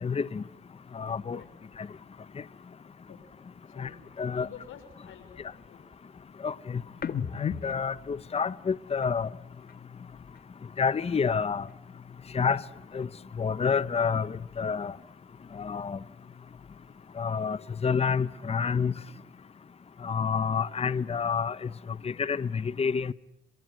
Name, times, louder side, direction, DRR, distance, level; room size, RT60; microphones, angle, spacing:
voice 1, 0.0-0.4 0.9-1.4 3.8-3.9 4.2-4.5 6.4-6.8 7.3-9.3 10.8-11.7 12.3-12.6 12.9-13.1 13.4-14.9 15.6-16.0 17.2-18.9 20.0-21.6 22.0-23.1, left 6 dB, 30° left, 1.0 m, -28 dB
voice 2, 1.3-1.7 3.1-3.4 3.7-5.9, left 7 dB, 80° left, 5.8 m, -50 dB
sound 1, 7.0-10.5 10.9-12.7 13.0-14.8 15.2-17.0, left 7 dB, 50° left, 1.8 m, -41 dB
28.0 x 25.0 x 7.7 m
cardioid pair, 90°, 20 cm